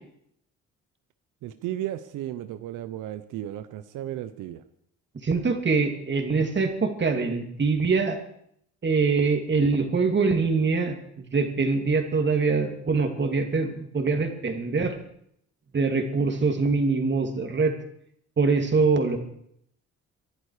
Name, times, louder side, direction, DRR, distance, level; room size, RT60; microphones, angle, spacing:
voice 1, 1.4-4.6, right 12 dB, 90° right, 11 dB, 0.9 m, -34 dB
voice 2, 5.2-8.2 8.8-14.9 15.7-17.7 18.4-19.2, right 4 dB, 35° right, 5 dB, 2.9 m, -24 dB
24.5 x 11.0 x 5.0 m, 0.71 s
cardioid pair, 90°, 30 cm